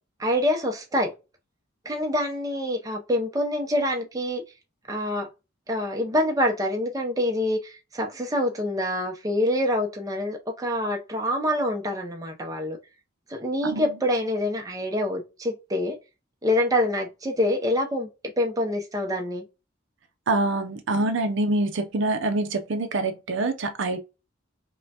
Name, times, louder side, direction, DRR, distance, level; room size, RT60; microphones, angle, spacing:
voice 1, 0.2-1.1 1.8-4.4 4.9-5.3 5.7-12.8 13.3-16.0 16.4-18.1 18.4-19.4, left 1 dB, 15° right, 0.6 m, -26 dB
voice 2, 20.3-24.0, right 2 dB, 65° right, 0.6 m, -25 dB
5.4 x 2.2 x 2.8 m
head